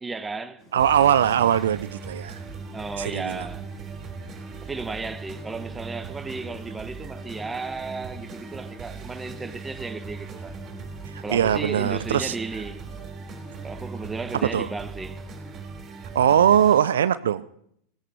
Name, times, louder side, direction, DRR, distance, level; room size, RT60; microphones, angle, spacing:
voice 1, 0.0-0.6 2.7-3.7 4.6-10.6 11.2-12.8 13.6-15.2, right 3 dB, 15° right, 1.2 m, -34 dB
sound 1, 0.6-14.6, right 1 dB, 40° left, 5.1 m, -52 dB
voice 2, 0.7-2.4 3.0-3.5 11.1-12.3 14.5-14.7 16.1-17.4, right 9 dB, 75° right, 0.5 m, -21 dB
sound 2, 0.8-16.8, right 4 dB, 35° right, 3.4 m, -39 dB
16.5 x 14.0 x 4.5 m
hypercardioid pair, 90°, 0 cm